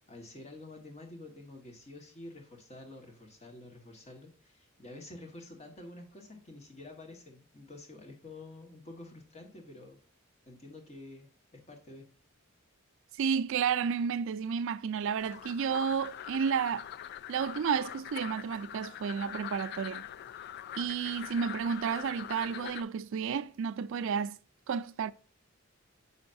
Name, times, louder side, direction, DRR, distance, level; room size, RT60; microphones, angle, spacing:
voice 1, 0.0-10.0 10.5-12.1, left 2 dB, 35° left, 1.3 m, -49 dB
voice 2, 13.2-16.9 17.3-20.0 20.7-24.4 24.7-25.1, right 6 dB, 65° right, 0.4 m, -31 dB
sound 1, 15.2-22.8, left 10 dB, 50° left, 0.3 m, -43 dB
6.9 x 5.6 x 2.5 m
head